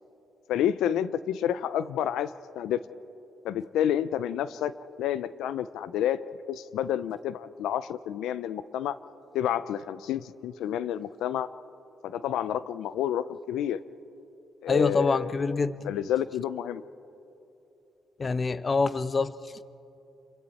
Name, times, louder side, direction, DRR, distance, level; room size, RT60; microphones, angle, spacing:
voice 1, 0.5-2.3 2.6-2.8 3.4-4.7 5.0-6.2 6.5-9.0 9.3-11.5 12.0-13.8 14.6-15.3 15.8-16.8, left 10 dB, 85° left, 15 dB, 0.5 m, -29 dB
voice 2, 14.7-15.9 18.2-19.7, left 4 dB, 35° left, 15 dB, 0.7 m, -26 dB
29.5 x 22.5 x 4.2 m, 2.9 s
cardioid pair, 90°, 0 cm